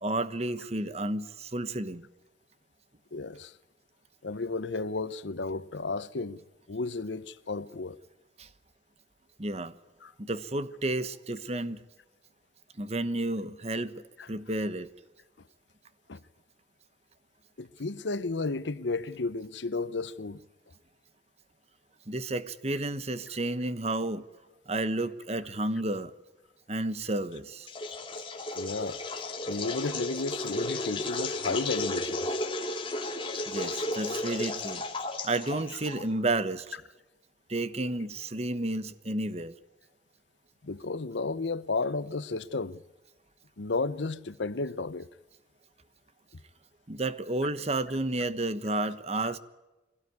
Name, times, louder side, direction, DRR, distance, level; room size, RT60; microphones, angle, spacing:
voice 1, 0.0-2.1 8.4-8.5 9.4-9.7 10.2-11.8 12.8-14.9 22.1-24.2 24.7-26.1 26.7-27.7 33.5-34.8 35.2-36.8 37.5-39.5 46.9-49.4, right 2 dB, 35° right, 1.1 m, -31 dB
voice 2, 3.1-3.5 4.2-6.4 6.7-8.0 10.0-10.1 14.2-14.3 16.1-16.2 17.6-20.4 28.5-29.0 29.5-32.4 40.6-42.8 43.6-45.1 49.2-49.3, left 3 dB, 90° left, 0.8 m, -33 dB
sound 1, 27.7-36.2, left 2 dB, 30° left, 2.4 m, -34 dB
24.0 x 17.5 x 9.6 m
head